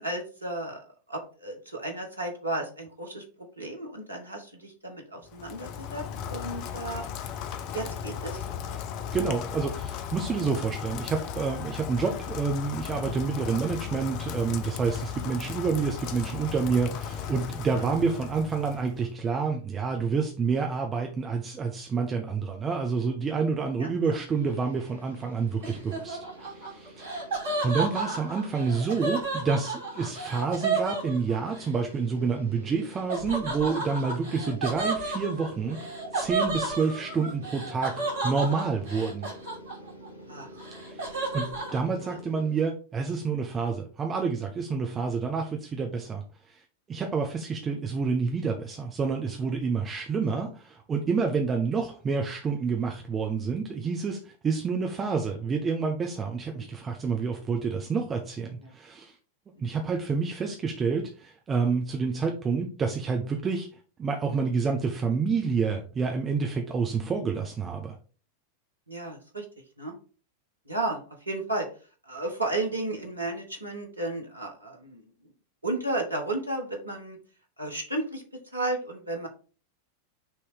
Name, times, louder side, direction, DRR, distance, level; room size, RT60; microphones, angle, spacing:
voice 1, 0.0-3.2 3.6-7.0 7.7-8.4 23.8-24.2 27.5-27.6 34.4-34.5 40.3-40.7 42.0-42.2 50.2-50.3 58.6-58.7 68.9-69.5 69.8-69.9 70.7-71.7 72.1-75.0 75.6-77.2 77.6-78.2 78.5-79.3, right 2 dB, 80° right, 2 dB, 1.3 m, -33 dB
Rain, 5.3-19.1, left 8 dB, 40° left, 0.6 m, -36 dB
voice 2, 9.1-27.1 27.6-35.8 36.1-38.0 38.2-39.3 40.8-41.5 41.7-46.6 46.9-59.1 59.6-63.7 64.0-68.0, right 5 dB, 20° right, 2 dB, 0.8 m, -28 dB
sound 1, 24.2-42.6, left 1 dB, 80° left, 1.9 m, -48 dB
Laughter, 25.6-31.7 33.1-40.1 40.4-41.8, right 3 dB, 60° right, 2.5 m, -32 dB
6.1 x 3.1 x 4.9 m, 0.37 s
figure-of-eight pair, 90°, 0 cm